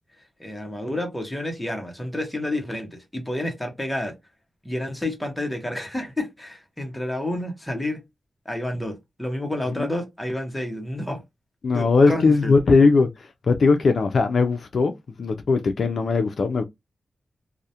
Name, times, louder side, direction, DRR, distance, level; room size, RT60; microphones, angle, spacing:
voice 1, 0.4-4.2 4.6-8.0 8.5-11.2 11.7-12.5, left 1 dB, 5° left, 0.7 m, -30 dB
voice 2, 11.6-13.1 13.5-14.9 15.2-16.6, left 4 dB, 55° left, 0.3 m, -19 dB
2.3 x 2.0 x 2.7 m
wide cardioid pair, 130°, 0 cm